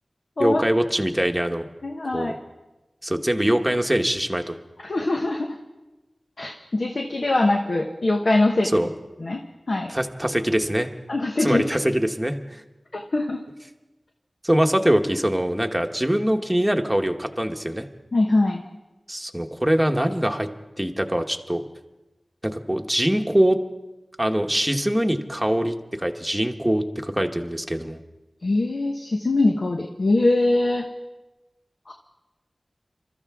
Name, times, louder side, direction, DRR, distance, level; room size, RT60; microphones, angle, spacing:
voice 1, 0.4-1.7 2.1-2.4 3.0-4.5 8.6-8.9 9.9-10.9 11.4-12.6 14.4-17.9 19.1-20.5 20.8-21.6 22.4-23.6 24.2-28.0, right 1 dB, 10° right, 4 dB, 1.2 m, -23 dB
voice 2, 1.8-2.4 4.8-5.6 6.4-8.7 9.2-9.4 9.7-9.9 11.1-11.6 12.9-13.4 18.1-18.6 28.4-30.8 31.9-32.0, left 2 dB, 65° left, 2 dB, 1.2 m, -22 dB
27.0 x 13.5 x 3.6 m, 1.1 s
wide cardioid pair, 65°, 0 cm